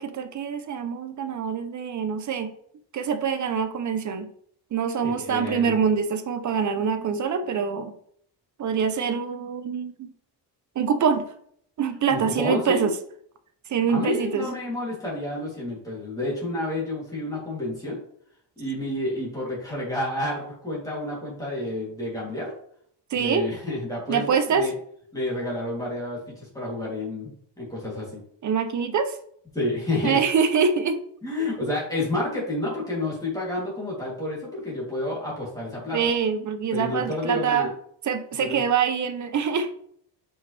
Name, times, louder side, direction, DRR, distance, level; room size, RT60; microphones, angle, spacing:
voice 1, 0.0-2.5 2.9-4.3 4.7-7.9 8.6-10.1 10.8-11.3 11.8-12.9 13.7-14.5 23.1-23.5 24.1-24.7 28.4-29.2 30.0-31.0 35.9-37.7 38.0-39.7, right 6 dB, 45° right, 9 dB, 0.6 m, -25 dB
voice 2, 5.0-5.8 12.1-12.9 13.9-18.0 18.6-22.5 23.1-24.7 25.1-28.2 29.5-30.2 31.2-36.1 36.7-37.7 38.3-38.6, left 1 dB, 10° left, -6 dB, 2.8 m, -30 dB
6.0 x 5.4 x 3.3 m, 0.65 s
cardioid pair, 150°, 43 cm